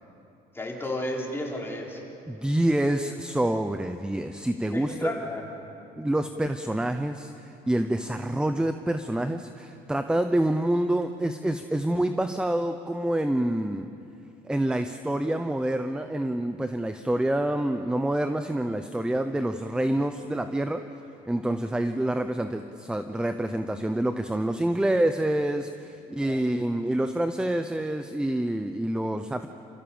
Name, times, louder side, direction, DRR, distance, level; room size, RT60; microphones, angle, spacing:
voice 1, 0.5-2.0 4.7-5.4 26.1-26.4, left 1 dB, 15° left, -1 dB, 3.8 m, -33 dB
voice 2, 2.3-5.1 6.0-13.9 14.4-20.9 21.3-29.5, right 1 dB, 5° right, 9 dB, 0.7 m, -27 dB
28.5 x 15.0 x 7.2 m, 2.7 s
cardioid pair, 110°, 17 cm